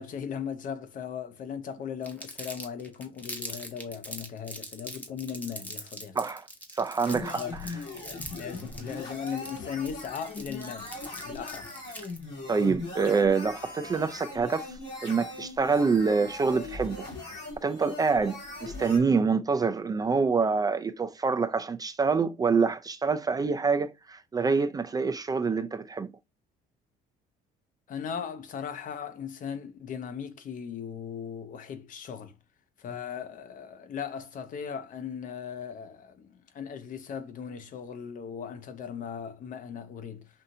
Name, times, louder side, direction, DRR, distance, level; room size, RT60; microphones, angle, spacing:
voice 1, 0.0-6.2 7.3-7.6 8.4-10.9 11.3-11.7 27.9-32.4 32.8-40.3, left 7 dB, 50° left, 0.6 m, -38 dB
Crumpling crinkling, 2.0-12.2, left 1 dB, 10° left, 0.7 m, -42 dB
voice 2, 6.2-6.5 6.7-7.4 12.5-14.7 15.0-17.1 17.6-26.1, right 5 dB, 20° right, 0.3 m, -26 dB
sound 1, 7.0-19.0, left 2 dB, 75° left, 2.7 m, -40 dB
5.4 x 2.6 x 2.6 m
cardioid pair, 110°, 17 cm